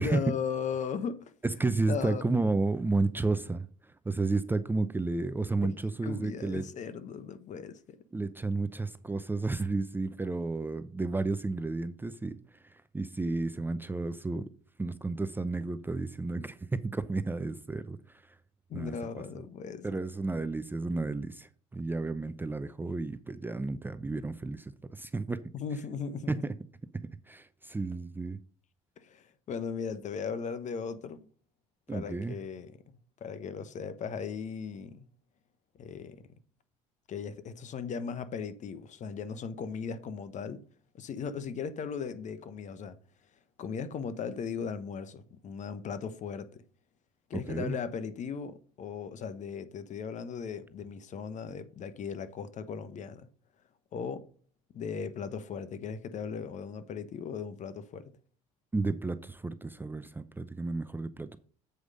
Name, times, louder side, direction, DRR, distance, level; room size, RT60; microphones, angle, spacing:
voice 1, 0.0-1.3 1.7-2.5 5.6-5.7 6.0-8.0 18.7-19.9 25.5-26.3 29.0-31.3 31.9-35.0 35.8-36.3 37.1-40.6 40.9-43.0 43.6-46.6 47.3-53.3 53.9-54.2 54.7-58.0, left 6 dB, 45° left, 1.0 m, -37 dB
voice 2, 1.4-3.7 4.1-6.6 8.1-12.4 12.9-14.5 14.8-18.0 18.7-19.0 19.8-25.4 26.3-26.5 27.3-28.4 31.9-32.4 47.3-47.8 58.7-61.4, right 3 dB, 10° right, 0.6 m, -32 dB
8.0 x 4.8 x 5.3 m
supercardioid pair, 80°, 17 cm